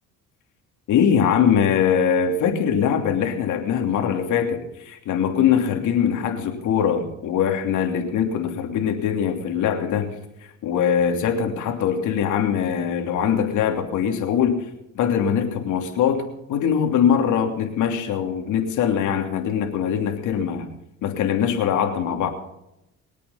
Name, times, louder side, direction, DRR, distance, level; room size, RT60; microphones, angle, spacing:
voice 1, 0.9-10.1 10.6-14.6 14.9-16.2 16.5-20.7 21.0-22.3, left 8 dB, 75° left, 4 dB, 3.0 m, -22 dB
23.5 x 8.5 x 5.7 m, 0.87 s
cardioid pair, 100°, 31 cm